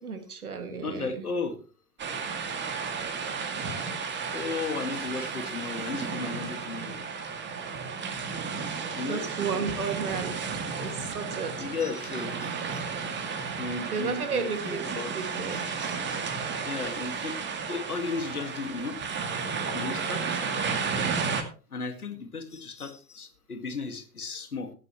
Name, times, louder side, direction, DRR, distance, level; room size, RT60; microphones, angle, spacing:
voice 1, 0.0-1.2 9.1-10.4 10.8-11.5 13.9-14.8 15.2-15.6, right 5 dB, 75° right, 8 dB, 2.3 m, -32 dB
voice 2, 0.8-1.6 4.3-7.0 8.9-9.2 11.6-12.8 13.6-15.1 15.5-16.0 16.6-17.4 17.7-19.0 19.7-20.4 21.7-24.7, left 4 dB, 80° left, 8 dB, 2.1 m, -35 dB
sound 1, 2.0-21.4, right 5 dB, 25° right, 2.3 m, -33 dB
16.0 x 11.0 x 3.1 m, 0.36 s
figure-of-eight pair, 85°, 44 cm